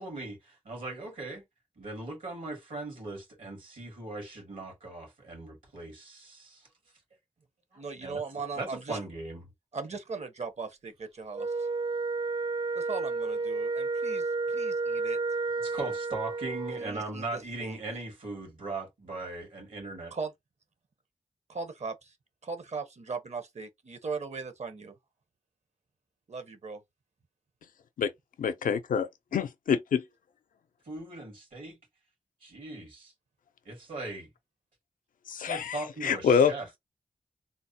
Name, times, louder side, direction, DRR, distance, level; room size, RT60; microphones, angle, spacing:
voice 1, 0.0-1.4 1.8-6.7 7.7-8.2 8.6-9.5 15.6-20.1 30.9-31.8 32.4-33.1 33.6-34.3 35.4-36.8, right 2 dB, 80° right, 2.3 m, -39 dB
voice 2, 7.8-9.0 9.7-11.7 12.7-15.2 16.8-17.8 20.1-20.3 21.5-22.1 22.4-24.9 26.3-26.8, right 4 dB, 55° right, 0.8 m, -38 dB
Wind instrument woodwind instrument, 11.3-16.9, right 3 dB, 35° right, 0.3 m, -31 dB
voice 3, 28.4-30.0 35.3-36.5, left 6 dB, 90° left, 0.4 m, -26 dB
3.8 x 2.1 x 2.8 m
cardioid pair, 45°, 14 cm